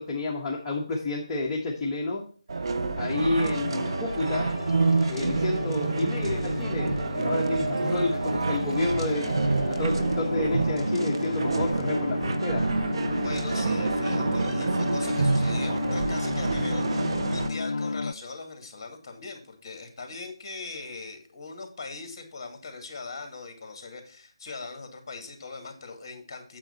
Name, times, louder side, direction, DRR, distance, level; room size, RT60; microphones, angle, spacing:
voice 1, 0.0-2.2 3.0-4.5 5.1-12.6, left 2 dB, 15° left, -5 dB, 1.4 m, -30 dB
sound 1, 2.5-17.5, right 3 dB, 55° right, 0.9 m, -28 dB
sound 2, 3.5-18.1, left 3 dB, 70° left, 0.3 m, -33 dB
voice 2, 13.2-26.6, left 3 dB, 35° left, 4 dB, 2.6 m, -40 dB
8.9 x 7.6 x 4.2 m, 0.42 s
figure-of-eight pair, 160°, 3 cm